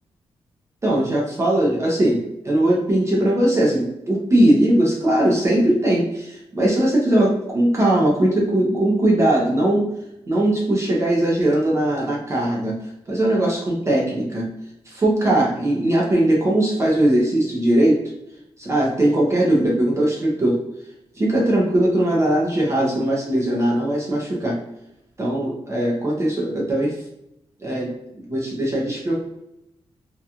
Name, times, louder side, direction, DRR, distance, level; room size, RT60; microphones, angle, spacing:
voice 1, 0.8-9.9 10.3-12.7 13.1-14.5 14.9-18.0 18.6-20.6 21.2-24.6 25.2-26.9 27.6-29.3, right 1 dB, 25° right, -3 dB, 0.5 m, -20 dB
2.8 x 2.2 x 2.3 m, 0.82 s
wide cardioid pair, 145°, 11 cm